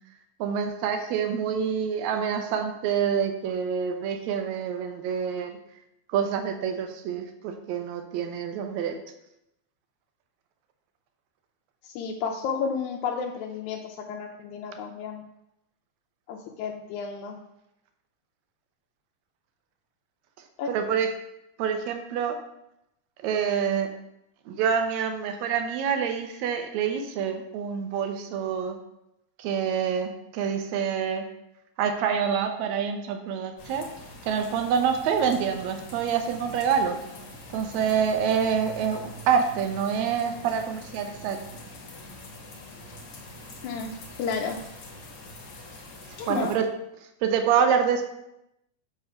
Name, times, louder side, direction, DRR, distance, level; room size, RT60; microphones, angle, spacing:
voice 1, 0.4-5.5 6.1-9.0 20.7-21.1 21.6-22.4 23.2-23.9 24.5-28.8 29.4-31.2 31.8-33.9 34.2-37.0 37.5-41.4 46.3-46.7 47.2-48.0, right 7 dB, 70° right, 6 dB, 1.9 m, -26 dB
voice 2, 11.8-15.2 16.3-17.4 20.6-20.7 43.6-43.9 44.2-44.6 46.2-46.5, left 6 dB, 80° left, 2 dB, 1.9 m, -32 dB
sound 1, 33.6-46.6, left 1 dB, 55° left, 2.0 m, -44 dB
7.6 x 3.5 x 5.7 m, 0.84 s
omnidirectional pair, 3.7 m